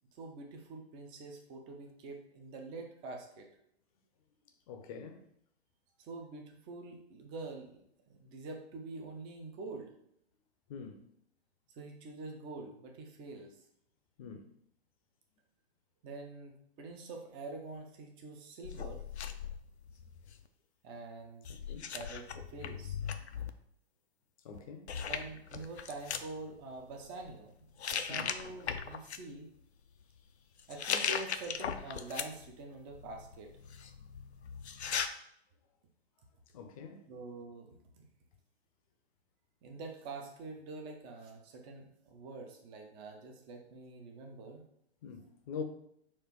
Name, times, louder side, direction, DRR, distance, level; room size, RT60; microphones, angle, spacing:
voice 1, 0.2-3.5 6.0-9.9 11.8-13.6 16.0-19.0 20.8-21.5 21.9-23.0 24.9-27.7 27.9-29.5 30.7-33.5 37.1-38.1 39.6-44.6, right 3 dB, 15° right, 0.4 m, -46 dB
voice 2, 4.7-5.3 10.7-11.1 14.2-14.5 21.5-21.8 24.4-24.9 28.1-28.3 36.5-37.0 45.0-45.6, left 6 dB, 35° left, 0.6 m, -44 dB
sound 1, 18.6-20.5 21.4-23.5 24.5-24.6 24.9-26.3 27.0-27.4 27.8-29.2 30.6-32.5 32.9-35.1, left 7 dB, 80° left, 0.5 m, -38 dB
4.3 x 2.5 x 4.5 m
figure-of-eight pair, 115°, 33 cm